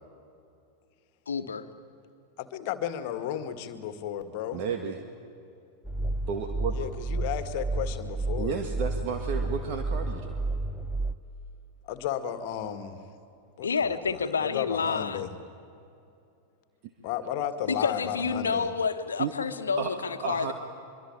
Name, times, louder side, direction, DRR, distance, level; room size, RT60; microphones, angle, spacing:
voice 1, 1.3-1.7 13.6-15.3 17.7-20.5, left 5 dB, 70° left, 9 dB, 1.4 m, -29 dB
voice 2, 2.4-4.6 6.7-8.6 11.9-13.0 13.6-15.3 17.0-18.7, left 10 dB, 45° left, 10 dB, 1.9 m, -34 dB
voice 3, 4.5-5.0 6.3-6.8 8.4-10.4 19.2-19.3 19.8-19.9 20.2-20.5, right 6 dB, 45° right, 4 dB, 2.0 m, -32 dB
sound 1, 5.8-11.2, right 2 dB, 5° left, 0.9 m, -31 dB
25.0 x 24.0 x 8.9 m, 2.6 s
figure-of-eight pair, 90°, 0 cm